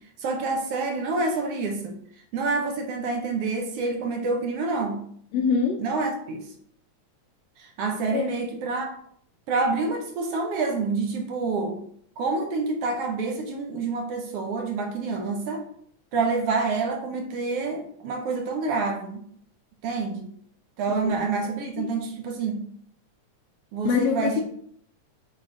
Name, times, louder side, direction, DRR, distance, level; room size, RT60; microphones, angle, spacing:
voice 1, 0.2-2.0 2.3-5.0 5.8-6.5 7.6-8.9 9.5-11.8 12.2-15.7 16.1-19.2 19.8-20.3 20.8-22.7 23.7-24.4, right 3 dB, 70° right, 3 dB, 1.6 m, -27 dB
voice 2, 5.3-5.8 8.1-8.3 20.9-21.1 21.8-21.9 23.8-24.4, left 6 dB, 75° left, 2 dB, 1.7 m, -24 dB
7.5 x 3.5 x 3.8 m, 0.64 s
omnidirectional pair, 3.4 m